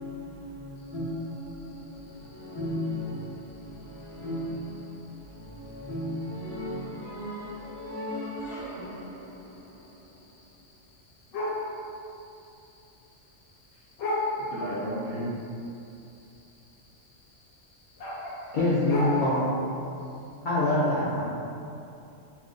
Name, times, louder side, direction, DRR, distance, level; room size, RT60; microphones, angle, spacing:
voice 1, 0.0-9.7, left 1 dB, 30° left, -12 dB, 0.9 m, -36 dB
sound 1, 0.8-20.4, left 2 dB, 85° left, 1.0 m, -40 dB
voice 2, 14.4-15.4 19.8-20.0 21.1-21.2, equal, 60° right, -8 dB, 0.7 m, -34 dB
voice 3, 18.5-19.5 20.4-21.2, left 1 dB, 60° left, -9 dB, 0.5 m, -24 dB
2.4 x 2.3 x 3.7 m, 2.7 s
omnidirectional pair, 1.3 m